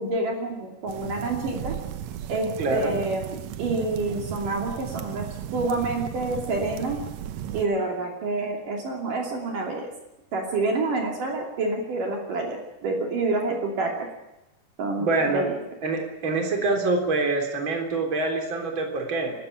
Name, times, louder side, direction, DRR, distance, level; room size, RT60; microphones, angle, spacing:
voice 1, 0.0-1.7 2.3-5.2 5.5-7.0 7.5-9.9 10.3-14.1 14.8-15.5, right 3 dB, 55° right, 1 dB, 4.2 m, -28 dB
sound 1, 0.9-7.7, right 10 dB, 85° right, 1.5 m, -35 dB
voice 2, 2.6-2.9 15.0-15.5 15.8-19.3, right 3 dB, 30° right, 3 dB, 4.0 m, -25 dB
27.0 x 13.0 x 10.0 m, 0.96 s
omnidirectional pair, 4.6 m